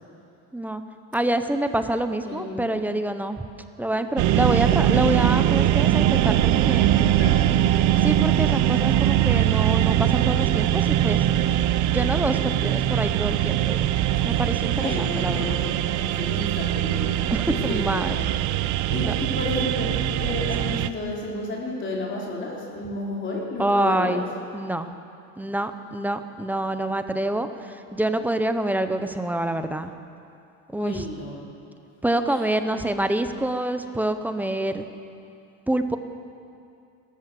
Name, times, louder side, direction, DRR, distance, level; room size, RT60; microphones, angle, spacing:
voice 1, 1.1-3.4 3.8-7.0 8.0-11.3 11.9-13.9 14.2-15.6 17.3-18.2 19.0-19.1 23.6-24.3 24.5-24.9 25.4-29.9 30.7-31.0 32.0-34.9 35.7-36.0, right 1 dB, 5° right, 8 dB, 0.6 m, -26 dB
voice 2, 2.2-2.8 6.8-7.4 14.3-14.4 14.7-17.2 17.5-18.3 18.9-19.9 20.2-24.2 30.7-31.5 32.3-32.8, left 2 dB, 30° left, -3 dB, 3.8 m, -32 dB
sound 1, 4.2-20.9, right 12 dB, 50° right, 0.7 m, -22 dB
27.5 x 14.0 x 7.6 m, 2.6 s
cardioid pair, 170°, 39 cm